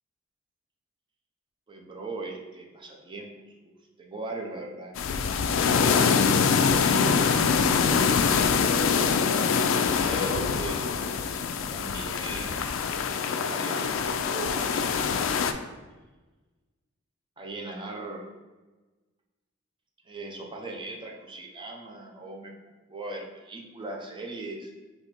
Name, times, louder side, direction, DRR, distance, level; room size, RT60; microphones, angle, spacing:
voice 1, 1.7-4.9 5.7-6.1 6.5-7.2 7.8-9.6 10.0-11.3 11.7-12.8 13.3-15.3 17.4-18.3 20.0-24.7, right 2 dB, 25° right, 1 dB, 0.6 m, -39 dB
sound 1, 5.0-15.5, left 6 dB, 70° left, 0.3 m, -24 dB
3.8 x 2.9 x 4.3 m, 1.2 s
head